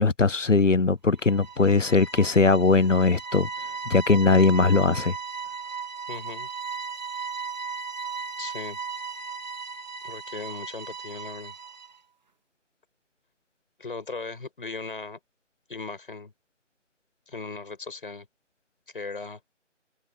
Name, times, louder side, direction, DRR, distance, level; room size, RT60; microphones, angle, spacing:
voice 1, 0.0-3.5 3.9-5.1, left 4 dB, 90° left, 1.1 m, -20 dB
sound 1, 1.2-12.0, right 5 dB, 35° right, 2.5 m, -36 dB
voice 2, 6.1-6.5 8.4-8.8 10.0-11.5 13.8-15.2 15.7-16.3 17.3-18.3 18.9-19.4, left 3 dB, 45° left, 7.5 m, -37 dB
figure-of-eight pair, 165°, 36 cm